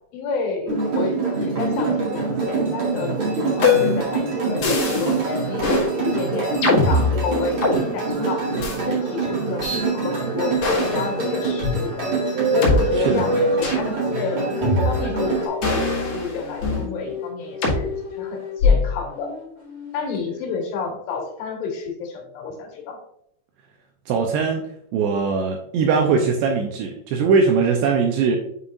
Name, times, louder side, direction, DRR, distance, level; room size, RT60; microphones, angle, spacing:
voice 1, 0.1-3.2 3.6-8.5 8.8-12.1 12.5-19.3 19.9-23.0, left 4 dB, 75° left, 1 dB, 3.9 m, -30 dB
sound 1, 0.7-15.5, right 4 dB, 50° right, 1.6 m, -25 dB
sound 2, 3.6-4.1 4.6-5.2 5.6-5.9 6.6-7.8 8.6-8.8 9.6-9.8 10.6-11.0 11.6-11.7 12.6-12.8 13.6-13.9 14.6-15.2 15.6-16.9 17.6-17.8 18.6-19.0, left 4 dB, 50° left, 2.3 m, -21 dB
sound 3, 12.0-13.7 14.1-16.0 16.4-18.7 19.1-20.2, equal, 30° right, 2.0 m, -29 dB
voice 2, 24.1-24.7 24.9-28.4, right 5 dB, 85° right, 2 dB, 2.5 m, -20 dB
8.0 x 5.7 x 2.5 m, 0.74 s
omnidirectional pair, 5.6 m